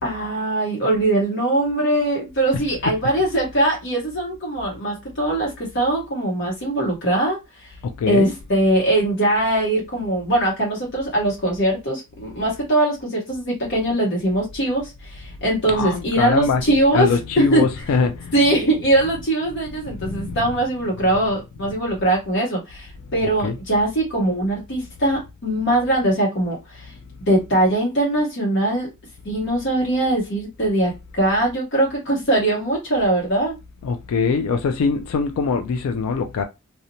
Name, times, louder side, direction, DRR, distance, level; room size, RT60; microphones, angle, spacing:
voice 1, 0.0-7.7 8.1-17.6 18.3-26.9 27.3-28.9 29.2-33.5, right 1 dB, 55° left, 0.7 m, -21 dB
voice 2, 7.8-8.3 15.7-16.6 16.9-18.3 19.9-20.4 23.2-23.6 33.8-36.4, left 5 dB, 85° left, 0.3 m, -22 dB
2.8 x 2.0 x 2.5 m
head